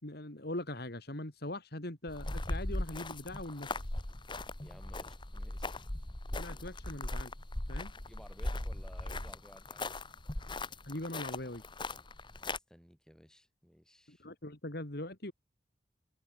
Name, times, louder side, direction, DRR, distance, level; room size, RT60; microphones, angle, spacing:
voice 1, 0.0-3.8 6.4-7.3 7.7-7.9 10.9-11.6 14.1-15.3, left 1 dB, 60° left, 3.0 m, -41 dB
sound 1, 2.1-12.6, left 2 dB, 25° left, 1.5 m, -39 dB
voice 2, 4.6-5.9 8.1-9.9 12.4-14.3, equal, 5° left, 7.6 m, -57 dB
head